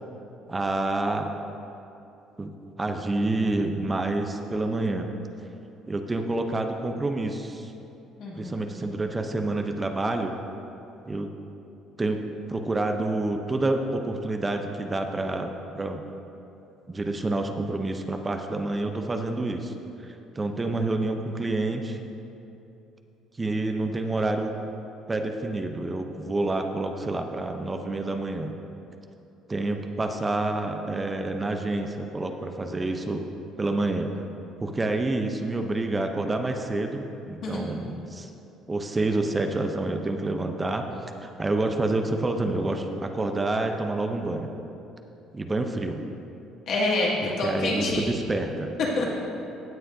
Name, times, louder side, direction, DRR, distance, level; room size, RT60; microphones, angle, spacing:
voice 1, 0.5-1.3 2.4-2.5 2.8-5.1 5.9-7.7 8.3-10.3 11.0-11.3 12.0-16.0 16.9-19.7 20.0-22.0 23.4-24.5 25.1-28.6 29.5-33.2 33.6-34.1 34.6-38.3 38.7-40.9 41.2-44.5 45.3-46.0 47.4-48.8, right 2 dB, 20° right, 5 dB, 0.7 m, -28 dB
voice 2, 8.2-8.7 37.4-37.6 46.7-48.1 49.0-49.1, left 2 dB, 65° left, -6 dB, 2.4 m, -27 dB
16.5 x 7.6 x 2.7 m, 2.9 s
cardioid pair, 95°, 0 cm